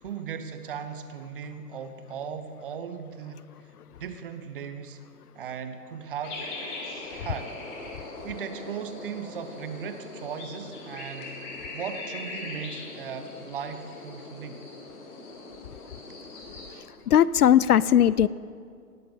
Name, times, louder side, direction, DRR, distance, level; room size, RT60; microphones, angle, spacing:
voice 1, 0.0-3.7 4.0-5.0 5.3-6.5 7.1-7.6 8.2-11.4 11.7-14.7, right 7 dB, 35° right, 9 dB, 0.8 m, -37 dB
sound 1, 6.2-16.7, left 2 dB, 30° left, 2.2 m, -40 dB
voice 2, 17.1-18.3, left 10 dB, 75° left, 19 dB, 0.5 m, -18 dB
18.5 x 7.8 x 5.5 m, 2.3 s
hypercardioid pair, 140°, 47 cm